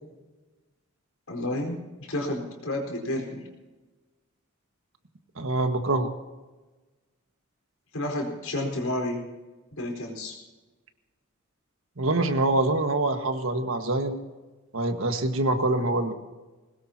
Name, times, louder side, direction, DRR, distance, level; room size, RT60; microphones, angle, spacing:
voice 1, 1.3-1.8 2.1-3.4 7.9-9.2 9.8-10.3, left 1 dB, 85° left, 1 dB, 4.5 m, -30 dB
voice 2, 5.4-6.1 12.0-14.2 14.7-16.2, right 2 dB, 70° right, 6 dB, 1.6 m, -25 dB
22.0 x 19.5 x 2.9 m, 1.2 s
head